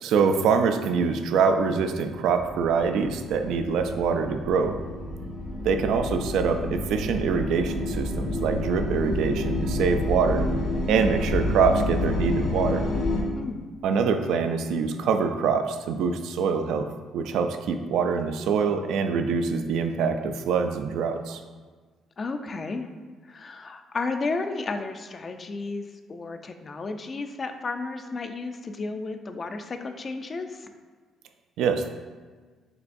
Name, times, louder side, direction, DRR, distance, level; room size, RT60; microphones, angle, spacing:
voice 1, 0.0-4.8 5.6-10.5 10.9-12.8 13.8-16.9 17.1-21.4 31.6-31.9, right 5 dB, 80° right, 7 dB, 0.3 m, -24 dB
sound 1, 2.0-13.2, left 1 dB, 85° left, 0.9 m, -29 dB
voice 2, 13.4-13.7 22.2-22.9 23.3-30.7, left 3 dB, 40° left, 7 dB, 0.4 m, -33 dB
6.7 x 2.5 x 2.6 m, 1.4 s
supercardioid pair, 75°, 0 cm